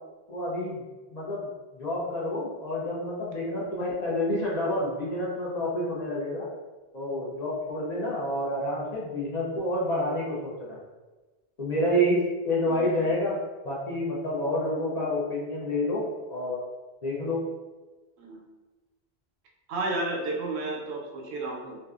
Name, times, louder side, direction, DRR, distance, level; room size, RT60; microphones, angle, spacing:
voice 1, 0.3-0.8 1.1-6.5 6.9-10.8 11.6-13.4 13.6-16.0 16.3-16.6 17.0-17.4, left 1 dB, 50° left, -5 dB, 0.6 m, -28 dB
voice 2, 12.7-13.1 18.2-18.4 19.7-21.8, right 2 dB, 90° right, 0 dB, 0.8 m, -32 dB
2.6 x 2.2 x 2.3 m, 1.2 s
omnidirectional pair, 1.1 m